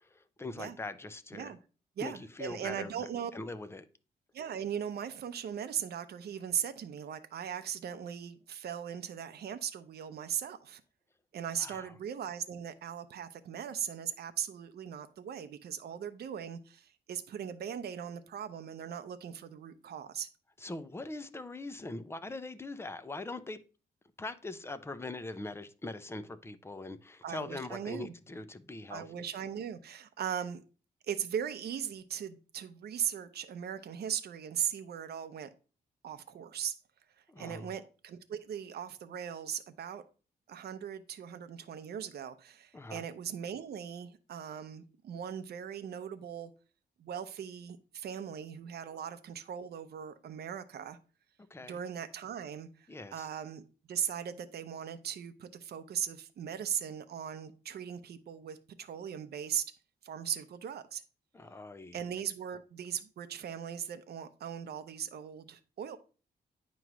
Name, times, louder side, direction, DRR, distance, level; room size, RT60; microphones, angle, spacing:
voice 1, 0.0-1.5 2.0-2.9 3.3-3.9 11.6-11.9 20.6-23.6 24.2-29.2 37.3-37.7 42.7-43.1 51.5-51.8 52.9-53.3 61.3-62.0, left 2 dB, 15° left, 0.6 m, -42 dB
voice 2, 2.0-3.3 4.3-10.8 11.3-20.3 27.2-28.1 28.9-30.6 31.1-35.5 36.0-36.8 37.2-40.0 40.5-46.5 47.0-51.0 51.7-53.6 53.9-59.7 60.0-61.0 61.9-66.0, right 8 dB, 70° right, 0.7 m, -39 dB
9.2 x 3.1 x 6.1 m
cardioid pair, 115°, 17 cm